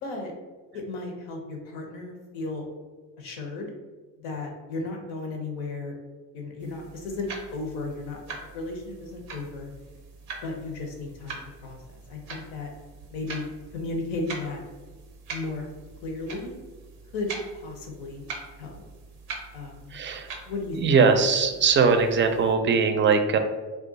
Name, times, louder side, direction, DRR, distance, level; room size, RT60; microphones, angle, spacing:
voice 1, 0.0-0.3 0.7-2.7 3.2-3.7 4.2-5.9 6.3-8.2 8.5-9.7 10.4-11.8 12.1-12.7 13.1-14.6 15.3-15.7 16.0-16.6 17.1-18.3 18.6-18.8 19.5-20.0 20.5-20.8, left 3 dB, 80° left, 2 dB, 0.7 m, -34 dB
sound 1, 6.6-22.5, right 4 dB, 90° right, 0.6 m, -43 dB
voice 2, 19.9-20.3 20.8-23.4, right 5 dB, 30° right, 7 dB, 0.4 m, -21 dB
2.5 x 2.3 x 3.8 m, 1.3 s
hypercardioid pair, 50°, 42 cm